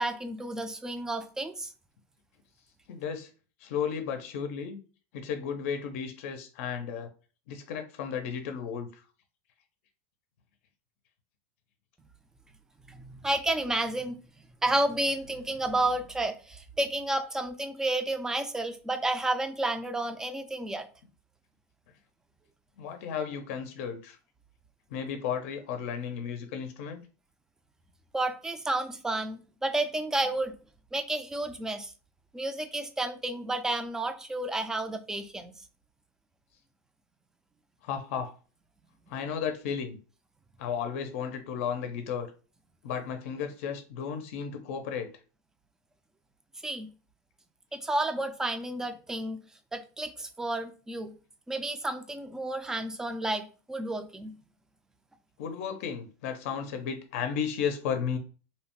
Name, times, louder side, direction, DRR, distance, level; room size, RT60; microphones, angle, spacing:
voice 1, 0.0-1.7 12.9-14.2 14.6-20.9 28.1-30.5 30.9-31.9 32.3-35.6 46.6-46.9 47.7-49.4 49.7-51.1 51.5-54.4, right 2 dB, 5° right, 8 dB, 0.3 m, -31 dB
voice 2, 2.9-3.3 3.6-4.8 5.1-7.1 7.5-9.0 22.8-24.2 24.9-27.0 37.8-38.3 39.1-40.0 40.6-42.3 42.8-45.1 55.4-58.2, left 7 dB, 75° left, 7 dB, 0.5 m, -34 dB
2.8 x 2.1 x 2.9 m, 0.36 s
supercardioid pair, 135°, 7 cm